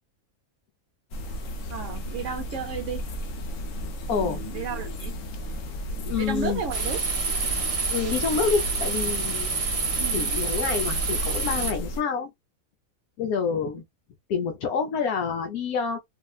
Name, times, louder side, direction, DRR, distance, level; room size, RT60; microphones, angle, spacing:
sound 1, 1.1-12.0, equal, 65° left, 1.0 m, -34 dB
voice 1, 1.7-3.0 4.1-5.1 6.2-7.0 10.0-10.3, right 6 dB, 65° right, 0.9 m, -33 dB
voice 2, 3.8-4.6 6.1-6.6 7.9-9.5 10.1-12.3 13.2-13.8 14.3-16.0, left 6 dB, 80° left, 1.2 m, -28 dB
sound 2, 6.7-11.7, right 4 dB, 40° right, 0.5 m, -28 dB
3.9 x 2.1 x 2.3 m
omnidirectional pair, 1.5 m